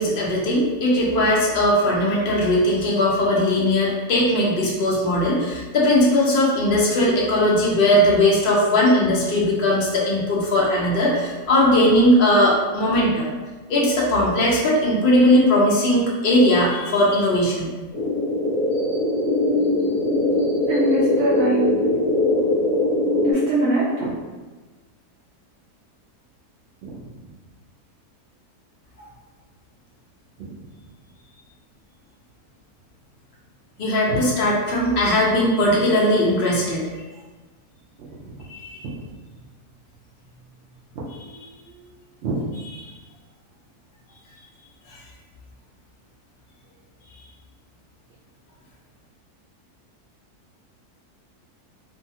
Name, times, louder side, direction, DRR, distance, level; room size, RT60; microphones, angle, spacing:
voice 1, 0.0-13.3 13.7-17.7 33.8-36.9 38.5-38.8, left 1 dB, 75° left, -4 dB, 0.5 m, -19 dB
sound 1, 17.9-23.3, left 1 dB, 5° left, 0.7 m, -21 dB
voice 2, 19.7-21.7 23.2-24.2 26.9-27.0 34.1-34.2 38.1-38.4 41.2-41.3 41.6-41.7 42.2-42.4, right 2 dB, 70° right, -7 dB, 0.7 m, -25 dB
2.7 x 2.3 x 2.7 m, 1.3 s
omnidirectional pair, 1.7 m